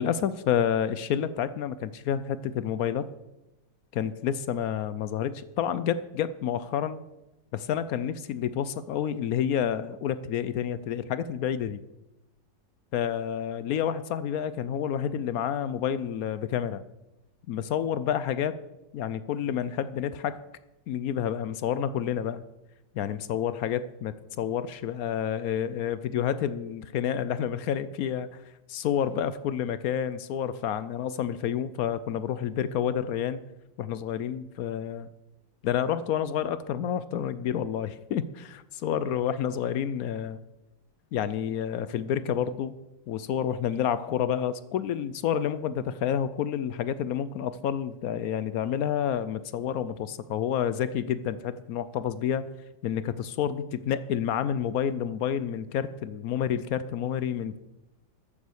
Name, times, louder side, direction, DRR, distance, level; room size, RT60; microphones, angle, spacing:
voice 1, 0.0-3.1 3.9-7.0 7.5-11.8 12.9-16.8 17.5-18.6 18.9-20.4 20.9-22.4 22.9-28.4 28.7-33.4 33.8-35.1 35.6-40.4 41.1-42.8 43.1-52.5 52.8-57.6, left 9 dB, 70° left, 15 dB, 0.9 m, -29 dB
13.5 x 7.4 x 6.3 m, 0.95 s
omnidirectional pair, 2.0 m